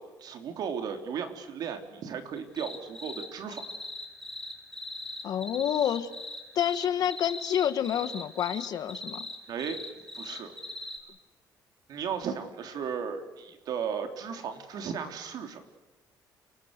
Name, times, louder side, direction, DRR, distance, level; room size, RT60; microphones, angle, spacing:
voice 1, 0.0-3.6 9.5-9.8 10.1-10.5 11.9-15.6, right 7 dB, 60° right, 7 dB, 3.3 m, -35 dB
sound 1, 2.4-3.3 3.5-11.0, left 2 dB, 5° left, 3.8 m, -39 dB
voice 2, 5.2-6.1 6.5-9.3, left 10 dB, 60° left, 12 dB, 1.5 m, -28 dB
29.5 x 19.0 x 6.6 m, 1.2 s
cardioid pair, 150°, 7 cm